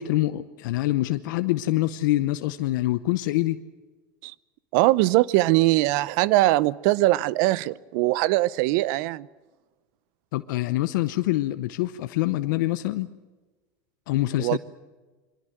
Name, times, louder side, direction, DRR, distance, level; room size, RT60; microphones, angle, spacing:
voice 1, 0.0-3.6 10.3-13.1 14.1-14.6, left 16 dB, 75° left, 0.8 m, -25 dB
voice 2, 4.7-9.3 14.4-14.6, right 18 dB, 65° right, 0.7 m, -21 dB
23.0 x 17.5 x 9.1 m
supercardioid pair, 100°, 10 cm